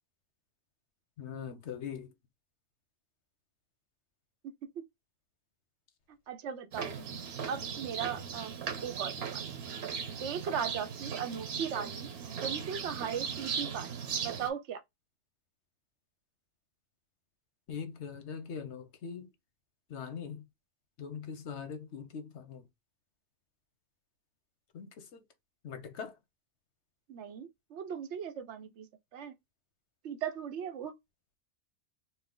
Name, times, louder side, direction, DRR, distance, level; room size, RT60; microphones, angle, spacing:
voice 1, 1.2-2.1 17.7-19.3 19.9-20.4 21.0-22.6 24.7-25.2 25.6-26.1, left 6 dB, 80° left, 1.1 m, -41 dB
voice 2, 4.4-4.8 6.3-7.0 7.5-8.5 8.8-9.4 10.2-13.9 14.2-14.8 27.1-28.9 29.1-29.3 30.0-30.9, right 8 dB, 90° right, 1.0 m, -38 dB
sound 1, 6.7-14.5, right 7 dB, 65° right, 1.0 m, -38 dB
4.3 x 2.0 x 3.8 m
omnidirectional pair, 1.2 m